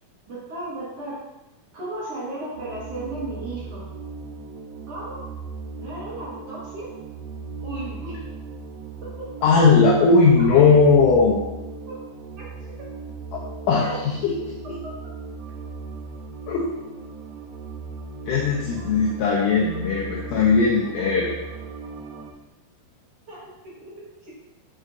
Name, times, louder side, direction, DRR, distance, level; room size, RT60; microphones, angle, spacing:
voice 1, 0.3-1.2 1.7-3.9 4.9-5.2 5.8-6.9 7.6-8.2 9.0-9.1 10.4-10.5 11.9-12.0 12.4-12.5 13.8-14.0 18.5-19.0 19.5-19.8 21.0-21.1 23.3-24.3, right 2 dB, 50° right, -8 dB, 2.0 m, -35 dB
sound 1, 2.6-22.3, right 4 dB, 85° right, 2.6 m, -38 dB
voice 2, 9.4-11.4 13.3-13.4 13.7-14.5 16.5-16.6 18.3-21.4, left 4 dB, 80° left, -2 dB, 1.8 m, -18 dB
6.3 x 6.3 x 2.6 m, 0.99 s
omnidirectional pair, 4.4 m